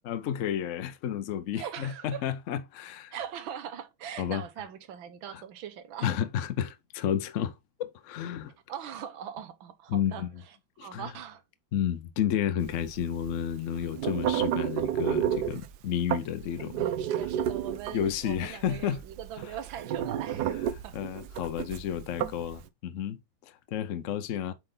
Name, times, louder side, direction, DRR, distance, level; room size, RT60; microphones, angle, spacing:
voice 1, 0.1-3.1 4.2-4.4 5.3-5.4 6.0-8.5 9.9-10.3 10.8-11.0 11.7-16.9 17.9-19.0 20.9-24.5, left 9 dB, 75° left, 0.7 m, -31 dB
voice 2, 1.5-2.2 3.1-6.2 8.7-11.4 16.8-21.2, right 9 dB, 85° right, 1.8 m, -41 dB
sound 1, 12.7-22.6, right 10 dB, 70° right, 1.0 m, -31 dB
7.7 x 4.5 x 3.8 m
omnidirectional pair, 2.1 m